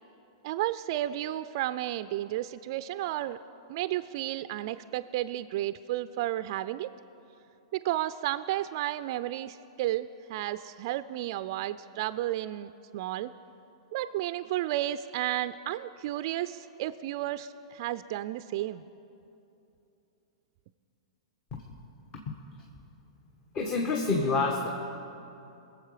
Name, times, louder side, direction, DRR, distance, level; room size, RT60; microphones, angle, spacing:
voice 1, 0.4-3.4 3.7-6.9 7.7-13.3 13.9-18.8, right 14 dB, 50° right, 13 dB, 0.3 m, -32 dB
voice 2, 23.5-24.7, left 3 dB, 40° left, 1 dB, 1.3 m, -27 dB
21.5 x 7.5 x 4.9 m, 2.8 s
hypercardioid pair, 110°, 3 cm